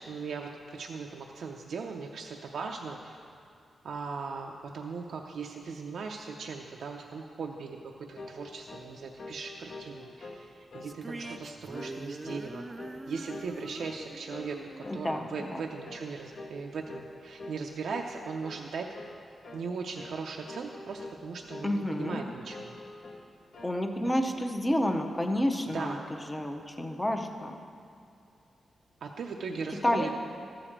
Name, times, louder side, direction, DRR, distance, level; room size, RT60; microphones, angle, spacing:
voice 1, 0.1-3.2 3.8-12.6 13.1-18.9 19.5-22.8 25.7-26.0 29.0-30.1, right 5 dB, 70° right, 1 dB, 0.5 m, -38 dB
sound 1, 8.2-8.4 8.7-8.9 9.2-10.4 10.7-11.0 11.2-11.5 11.7-12.0 12.3-13.0 13.3-14.0 14.3-14.5 14.8-15.0 15.3-15.6 15.8-16.1 16.4-16.6 16.9-17.1 17.4-17.6 17.9-18.1 18.4-18.6 18.9-19.2 19.4-19.7 19.9-20.1 20.5-21.2 21.5-22.2 22.5-23.2 23.5-24.3, left 2 dB, 50° left, 1.0 m, -45 dB
sound 2, 10.8-16.2, right 2 dB, 20° right, 0.3 m, -44 dB
voice 2, 14.9-15.6 21.6-22.2 23.6-27.6 29.7-30.1, left 1 dB, 10° left, 4 dB, 0.7 m, -30 dB
13.0 x 5.0 x 7.3 m, 2.5 s
wide cardioid pair, 155°, 0 cm